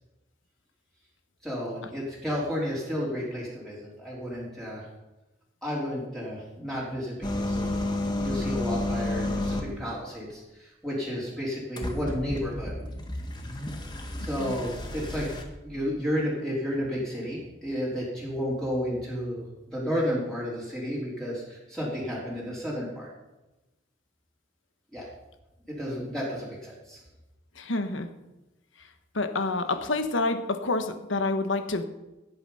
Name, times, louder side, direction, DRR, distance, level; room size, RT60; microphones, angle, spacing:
voice 1, 1.4-4.9 5.6-7.7 8.2-12.7 14.2-15.3 15.6-23.1 24.9-25.0 25.7-27.0, equal, ahead, -7 dB, 3.6 m, -32 dB
sound 1, 7.2-9.8 11.8-15.4, left 1 dB, 20° left, 1.6 m, -31 dB
voice 2, 14.2-14.5 27.6-28.1 28.8-28.9 29.1-31.8, left 3 dB, 85° left, 8 dB, 1.3 m, -28 dB
17.0 x 9.1 x 5.6 m, 1.0 s
head